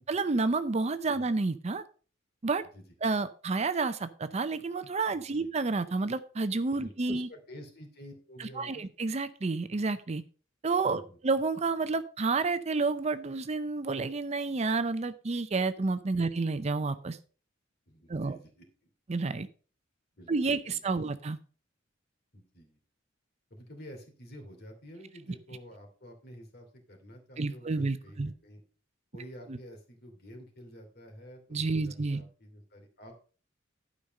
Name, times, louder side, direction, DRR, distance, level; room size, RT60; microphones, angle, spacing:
voice 1, 0.1-1.8 2.4-2.6 3.0-7.3 8.4-10.2 10.6-17.2 18.1-18.4 19.1-19.5 20.3-21.4 27.4-28.3 31.5-32.2, right 3 dB, 35° right, 12 dB, 0.5 m, -30 dB
voice 2, 5.1-5.5 6.7-8.9 10.9-11.2 17.9-18.9 20.2-21.0 22.3-22.8 23.5-28.6 29.1-33.2, equal, 50° left, 3 dB, 2.8 m, -50 dB
12.0 x 5.2 x 5.3 m, 0.39 s
head